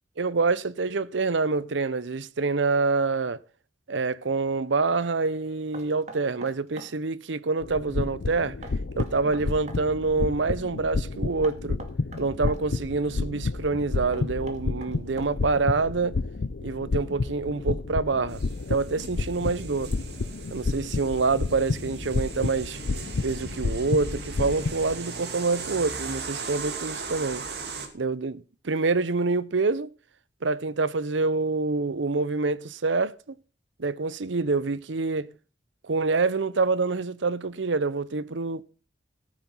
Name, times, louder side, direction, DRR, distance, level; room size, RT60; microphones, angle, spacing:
voice 1, 0.2-3.4 3.9-8.6 9.0-11.8 12.2-16.2 16.6-18.4 18.7-19.9 20.5-22.8 23.2-27.4 27.9-29.9 30.4-33.1 33.8-35.3 35.8-38.6, right 3 dB, 85° right, 0.7 m, -26 dB
Knock, 5.7-7.0 8.6-9.8 11.4-12.6 14.1-15.6, right 2 dB, 40° right, 2.0 m, -43 dB
sound 1, 7.6-24.9, left 3 dB, 70° left, 0.6 m, -31 dB
sound 2, 18.3-27.9, right 4 dB, 60° right, 2.3 m, -38 dB
14.0 x 9.2 x 5.6 m
head